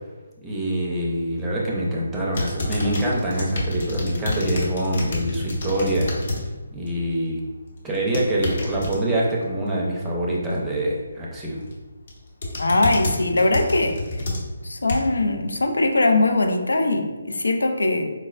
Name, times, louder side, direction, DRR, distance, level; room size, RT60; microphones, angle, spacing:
voice 1, 0.4-6.1 6.7-7.4 7.8-11.7, right 1 dB, 10° right, -5 dB, 0.6 m, -25 dB
sound 1, 2.3-6.4 6.8-7.2 7.9-9.0 11.4-11.7 12.1-15.2 15.8-15.9, left 1 dB, 50° left, 0.8 m, -29 dB
voice 2, 12.6-14.0 14.6-18.1, left 2 dB, 80° left, 4 dB, 0.4 m, -21 dB
4.5 x 2.0 x 2.4 m, 1.2 s
figure-of-eight pair, 155°, 0 cm